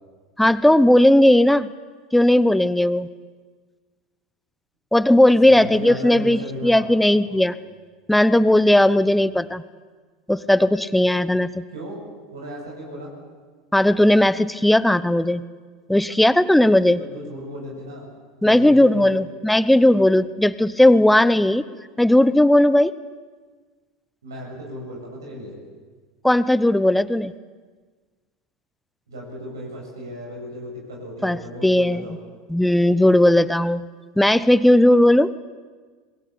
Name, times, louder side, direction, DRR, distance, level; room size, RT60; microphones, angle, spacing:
voice 1, 0.4-1.7 2.1-3.1 4.9-7.5 8.1-9.6 10.3-11.5 13.7-15.4 15.9-17.0 18.4-21.6 22.0-22.9 26.2-27.3 31.2-31.4 31.6-32.0 32.5-33.8 34.2-35.3, left 1 dB, 5° left, 16 dB, 1.0 m, -16 dB
voice 2, 5.5-7.4 11.7-12.0 12.3-13.1 17.0-18.1 18.4-19.2 24.2-25.6 29.1-32.2, equal, 75° right, -2 dB, 7.4 m, -35 dB
27.0 x 22.0 x 8.7 m, 1.4 s
figure-of-eight pair, 80°, 2 cm